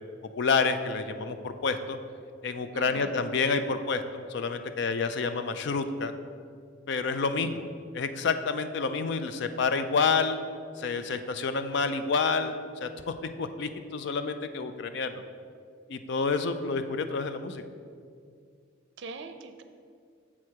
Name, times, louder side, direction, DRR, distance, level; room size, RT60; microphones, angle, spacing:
voice 1, 0.3-2.0 2.4-6.1 6.9-7.7 7.9-10.4 10.8-15.2 15.9-17.6, left 4 dB, 60° left, 9 dB, 0.4 m, -29 dB
voice 2, 2.7-3.2 19.0-19.6, right 3 dB, 60° right, 8 dB, 0.5 m, -42 dB
7.3 x 4.5 x 4.8 m, 2.2 s
head